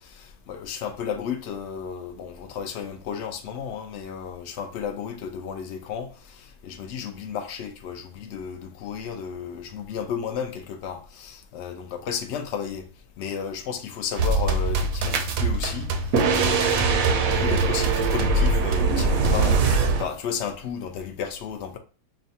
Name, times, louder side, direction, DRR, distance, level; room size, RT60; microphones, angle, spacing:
voice 1, 0.1-6.1 6.6-12.9 13.2-15.9 16.3-19.6 20.0-21.8, left 7 dB, 85° left, 0.6 m, -33 dB
sound 1, 14.2-20.0, right 3 dB, 70° right, 0.9 m, -22 dB
6.3 x 2.2 x 2.7 m
omnidirectional pair, 1.8 m